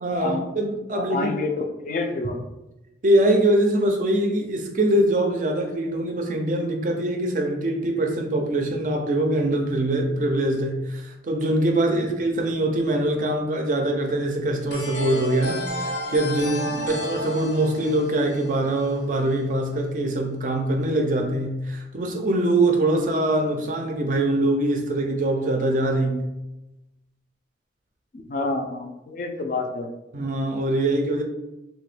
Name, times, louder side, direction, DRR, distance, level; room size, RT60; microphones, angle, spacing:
voice 1, 0.0-1.3 3.0-26.3 28.4-28.5 30.1-31.2, right 1 dB, 45° right, 0.4 m, -23 dB
voice 2, 0.9-2.4 16.7-16.9 28.1-29.9, left 3 dB, 45° left, 0.3 m, -28 dB
sound 1, 14.7-19.3, left 1 dB, 90° left, 0.7 m, -32 dB
2.9 x 2.2 x 3.1 m
head